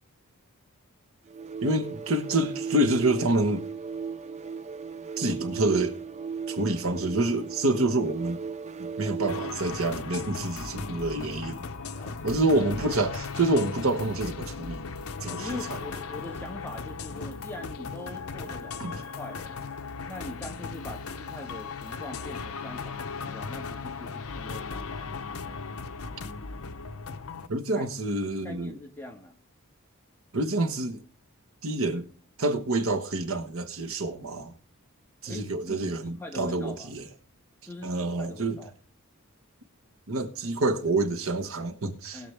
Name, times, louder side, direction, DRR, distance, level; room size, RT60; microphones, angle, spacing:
sound 1, 1.3-9.7, right 6 dB, 30° right, 0.5 m, -36 dB
voice 1, 1.6-3.7 5.2-6.0 6.5-8.4 8.8-11.6 12.2-14.8 15.2-15.8 18.8-19.0 27.5-28.7 30.3-31.0 31.6-32.1 32.4-34.5 35.2-37.1 37.8-38.6 40.1-42.3, right 2 dB, 70° right, 1.3 m, -27 dB
sound 2, 9.3-27.5, left 4 dB, 75° left, 0.8 m, -37 dB
voice 2, 11.9-12.6 15.3-19.5 20.1-25.2 27.8-27.9 28.4-29.4 35.3-36.9 37.7-38.7 42.1-42.3, left 1 dB, 10° left, 1.7 m, -42 dB
20.0 x 7.0 x 3.5 m
head